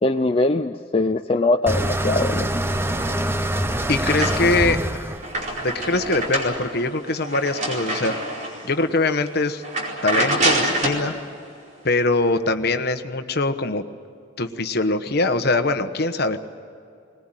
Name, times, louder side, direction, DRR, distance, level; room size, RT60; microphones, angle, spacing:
voice 1, 0.0-2.5, left 2 dB, 30° left, 6 dB, 0.5 m, -21 dB
sound 1, 1.7-6.6, right 1 dB, 10° right, 0.8 m, -25 dB
sound 2, 3.3-4.7 5.1-8.7 9.1-9.3 9.6-11.1, right 1 dB, 40° right, 4.6 m, -26 dB
voice 2, 3.9-5.1 5.6-8.2 8.6-9.6 10.0-11.2 11.8-13.8 14.4-16.4, left 2 dB, 55° left, 9 dB, 1.2 m, -22 dB
22.0 x 20.0 x 9.1 m, 2.5 s
head